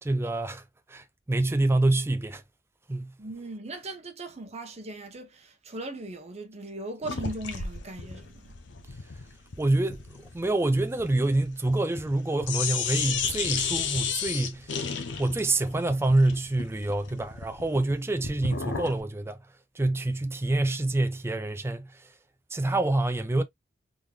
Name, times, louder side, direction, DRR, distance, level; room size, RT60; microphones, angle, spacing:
voice 1, 0.0-0.6 0.9-2.4 2.9-3.1 9.6-14.7 15.2-19.4 19.8-22.1 22.5-23.4, right 2 dB, 15° right, 0.4 m, -26 dB
voice 2, 3.2-8.5, right 2 dB, 35° right, 0.9 m, -39 dB
sound 1, 7.0-12.2 12.4-19.0, left 6 dB, 70° left, 0.7 m, -33 dB
3.7 x 3.2 x 2.3 m
head